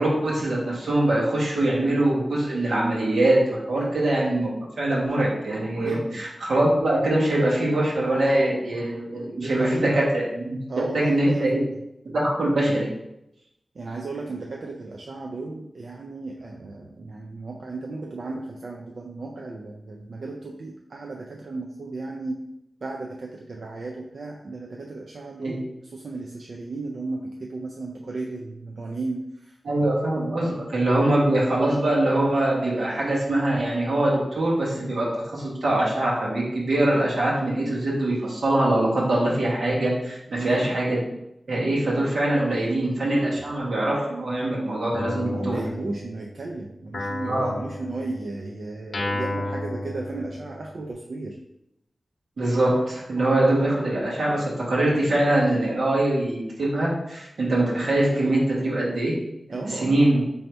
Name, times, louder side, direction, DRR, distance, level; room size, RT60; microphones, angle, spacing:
voice 1, 0.0-4.5 4.8-10.6 10.9-11.6 12.1-12.9 25.4-25.6 29.6-41.0 41.5-45.6 47.3-47.5 52.4-59.2 59.7-60.2, right 1 dB, 90° right, -4 dB, 1.1 m, -23 dB
voice 2, 5.8-6.3 9.2-10.0 10.7-11.8 13.7-22.4 22.8-29.6 30.4-30.5 40.3-40.7 45.3-51.4 59.5-60.0, right 3 dB, 70° right, 0 dB, 0.4 m, -34 dB
Guitar, 44.9-46.4 46.9-50.8, left 2 dB, 70° left, 0.8 m, -33 dB
3.3 x 2.7 x 4.4 m, 0.84 s
wide cardioid pair, 95°, 0 cm